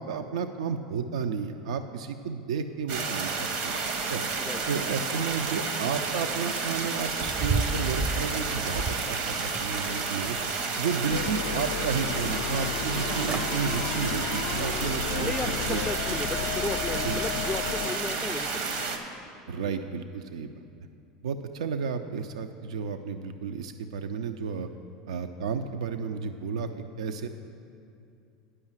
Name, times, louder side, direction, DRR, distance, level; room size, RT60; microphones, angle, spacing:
voice 1, 0.0-3.7 4.1-4.2 4.7-15.8 17.0-17.4 19.5-20.5 21.2-24.7 25.1-26.7 27.0-27.3, right 6 dB, 90° right, 8 dB, 0.4 m, -32 dB
sound 1, 2.9-19.0, right 4 dB, 70° right, 1.0 m, -31 dB
sound 2, 7.1-9.1 9.5-10.4 10.8-11.6 12.0-12.1 12.9-13.0 13.2-13.5 14.0-14.2 14.7-14.8, right 4 dB, 35° right, 0.5 m, -32 dB
sound 3, 11.1-18.0, left 8 dB, 85° left, 0.4 m, -34 dB
voice 2, 15.1-18.7 19.6-19.7, left 3 dB, 15° left, 11 dB, 0.3 m, -35 dB
9.6 x 5.6 x 7.3 m, 2.6 s
hypercardioid pair, 100°, 3 cm